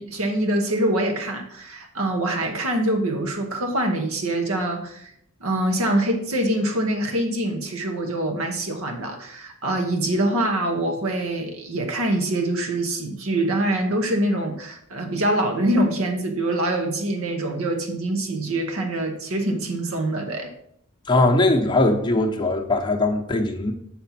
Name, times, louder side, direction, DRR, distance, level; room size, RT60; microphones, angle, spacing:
voice 1, 0.0-5.1 5.4-20.5, right 1 dB, 65° right, 1.0 m, -24 dB
voice 2, 21.1-23.7, left 2 dB, 20° left, 0.8 m, -20 dB
7.1 x 4.2 x 5.8 m
head